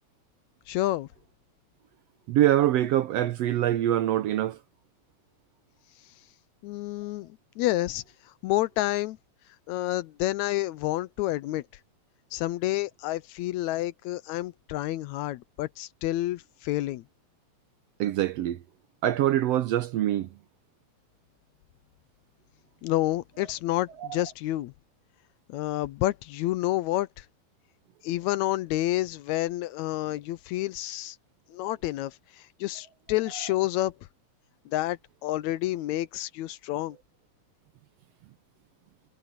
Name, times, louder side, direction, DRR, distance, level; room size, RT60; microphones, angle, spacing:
voice 1, 0.7-1.1 6.6-8.0 8.4-9.2 9.7-11.6 12.3-17.0 22.8-24.7 25.5-27.2 28.0-31.1 31.5-32.1 32.6-33.9 34.7-37.0, left 16 dB, 75° left, 1.9 m, -29 dB
voice 2, 2.3-4.6 18.0-18.6 19.0-20.3 24.0-24.1, right 12 dB, 75° right, 1.6 m, -24 dB
omnidirectional pair, 3.4 m